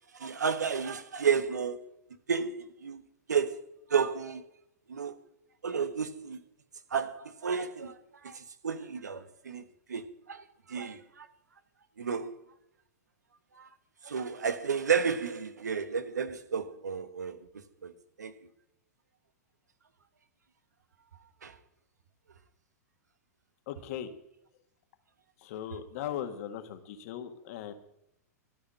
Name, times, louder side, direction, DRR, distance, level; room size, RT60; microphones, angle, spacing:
voice 1, 0.1-1.8 2.3-3.0 3.3-4.4 4.9-5.1 5.6-6.4 6.9-11.3 12.0-12.3 13.5-13.7 14.0-17.9 18.2-18.3 21.4-21.6, right 6 dB, 85° right, 1.1 m, -32 dB
voice 2, 23.7-24.1 25.4-27.7, left 10 dB, 55° left, 1.6 m, -38 dB
12.5 x 6.3 x 8.9 m
hypercardioid pair, 105°, 9 cm